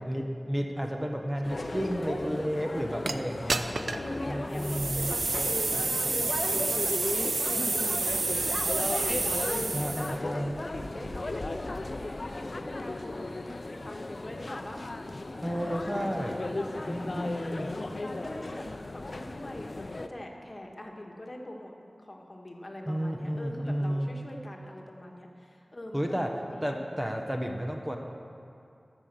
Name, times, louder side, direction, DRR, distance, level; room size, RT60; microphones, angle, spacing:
voice 1, 0.0-3.7 4.3-5.1 9.7-10.6 15.4-16.4 16.8-17.7 22.9-24.1 25.9-26.3 26.6-28.0, equal, 15° right, 2 dB, 1.1 m, -32 dB
sound 1, 1.4-20.1, left 2 dB, 65° left, 0.6 m, -36 dB
voice 2, 1.5-2.1 2.7-3.0 3.9-5.8 6.0-6.9 7.4-13.3 13.7-15.0 15.4-17.5 17.9-27.2, left 1 dB, 40° left, 1 dB, 1.6 m, -43 dB
sound 2, 3.1-3.2 3.5-4.1 4.6-10.2, right 3 dB, 85° right, 0.5 m, -29 dB
13.5 x 6.7 x 7.6 m, 2.5 s
wide cardioid pair, 50°, 0 cm